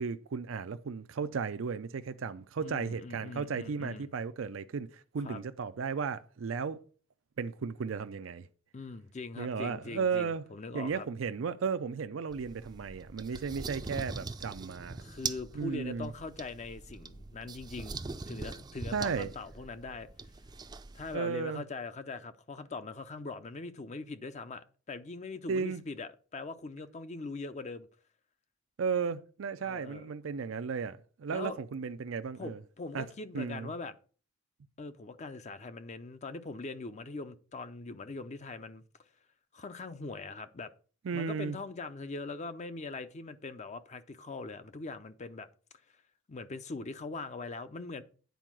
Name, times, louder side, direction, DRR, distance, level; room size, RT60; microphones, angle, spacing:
voice 1, 0.0-6.8 7.4-8.5 9.4-10.4 10.7-15.0 15.5-16.1 18.9-19.3 21.1-21.6 25.5-25.8 28.8-32.6 32.9-33.0 33.3-33.7 41.0-41.6, right 5 dB, 80° right, 0.5 m, -34 dB
voice 2, 2.6-4.1 5.2-5.4 8.7-11.1 13.3-13.5 15.0-18.0 18.2-20.1 20.9-27.9 29.6-30.1 31.3-31.6 32.4-34.0 34.8-38.8 39.5-40.7 41.1-45.5 46.3-48.0, left 3 dB, 35° left, 0.5 m, -42 dB
sound 1, 12.3-21.2, right 4 dB, 20° right, 0.4 m, -42 dB
9.2 x 4.5 x 6.0 m
head